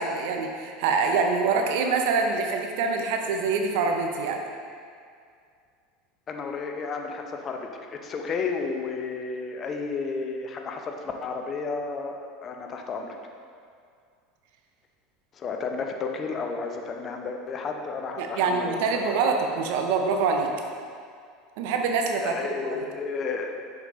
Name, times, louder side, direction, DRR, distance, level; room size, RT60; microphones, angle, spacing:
voice 1, 0.0-4.4 18.2-20.5 21.6-22.4 22.7-22.8, right 4 dB, 65° right, 3 dB, 0.6 m, -25 dB
voice 2, 6.3-10.9 11.2-13.2 15.4-19.1 22.2-23.5, left 4 dB, 35° left, 3 dB, 0.7 m, -32 dB
6.1 x 5.3 x 3.1 m, 2.2 s
hypercardioid pair, 80°, 0 cm